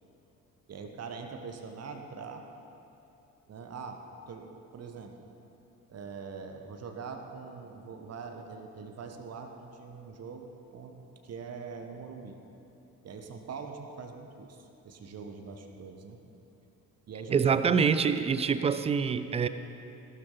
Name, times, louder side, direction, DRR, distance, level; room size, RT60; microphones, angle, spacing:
voice 1, 0.7-2.4 3.5-5.3 5.9-11.0 11.2-12.4 13.0-16.2 17.1-17.6, right 5 dB, 30° right, 4 dB, 1.3 m, -43 dB
voice 2, 17.3-19.5, right 6 dB, 15° right, 12 dB, 0.4 m, -25 dB
17.0 x 12.5 x 4.0 m, 2.8 s
figure-of-eight pair, 50°, 48 cm